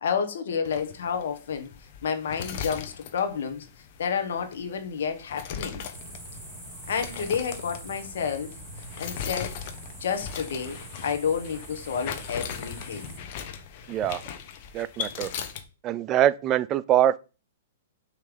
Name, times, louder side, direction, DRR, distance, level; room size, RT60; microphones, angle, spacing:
voice 1, 0.0-1.7 2.0-3.7 4.0-5.8 6.9-8.5 9.0-9.6 10.0-13.2, left 6 dB, 70° left, 1.3 m, -30 dB
sound 1, 0.6-15.6, left 8 dB, 50° left, 1.0 m, -39 dB
sound 2, 5.9-13.2, right 1 dB, ahead, 2.4 m, -43 dB
voice 2, 13.9-14.2 14.7-15.3 15.8-17.2, right 11 dB, 30° right, 0.4 m, -23 dB
6.2 x 3.3 x 5.1 m
hypercardioid pair, 125°, 0 cm